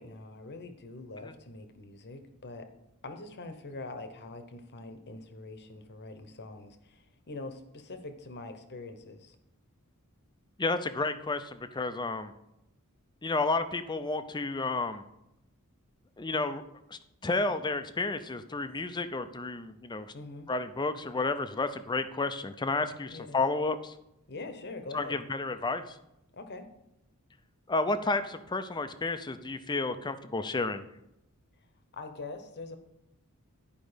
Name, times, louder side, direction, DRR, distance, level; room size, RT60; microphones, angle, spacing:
voice 1, 0.0-2.7 3.0-9.4 20.1-20.5 23.1-23.4 24.3-25.2 26.3-26.7 31.9-32.8, left 2 dB, 50° left, 8 dB, 1.0 m, -43 dB
voice 2, 10.6-12.3 13.2-15.0 16.2-16.6 16.9-20.1 20.5-23.9 24.9-26.0 27.7-30.8, left 3 dB, 20° left, 10 dB, 0.5 m, -31 dB
11.0 x 5.2 x 5.1 m, 0.84 s
head